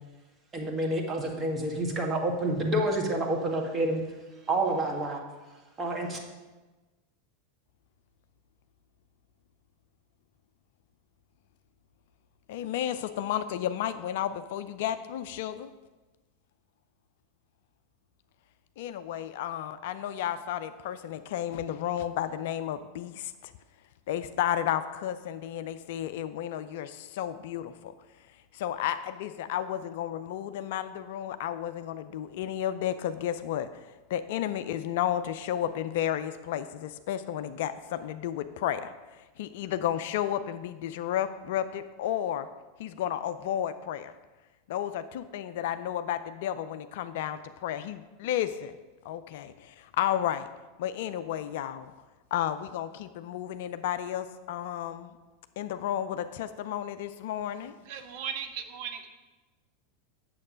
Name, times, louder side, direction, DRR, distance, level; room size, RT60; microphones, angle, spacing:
voice 1, 0.5-4.0 4.5-5.2 5.8-6.2, right 1 dB, 20° right, 1 dB, 1.6 m, -28 dB
voice 2, 12.5-15.7 18.8-23.5 24.1-27.9 28.5-42.5 42.8-44.1 44.7-48.8 49.0-50.5 50.8-51.9 52.3-55.2 55.6-57.7, left 11 dB, 55° left, 11 dB, 0.4 m, -32 dB
voice 3, 57.9-59.1, right 8 dB, 50° right, 7 dB, 0.7 m, -37 dB
8.6 x 7.0 x 5.0 m, 1.2 s
figure-of-eight pair, 85°, 0 cm